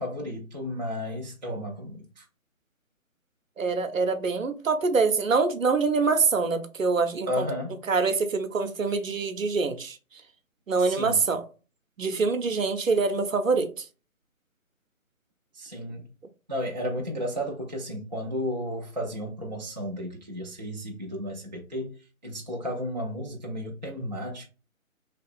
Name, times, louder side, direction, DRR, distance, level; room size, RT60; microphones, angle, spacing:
voice 1, 0.0-2.2 7.3-7.8 10.8-11.2 15.5-16.1 16.5-22.0 22.2-24.5, equal, 35° right, 0.4 m, -33 dB
voice 2, 3.6-7.5 7.9-10.0 10.7-11.5 12.0-13.9, right 4 dB, 70° right, 0.7 m, -25 dB
2.9 x 2.8 x 3.4 m
figure-of-eight pair, 145°, 42 cm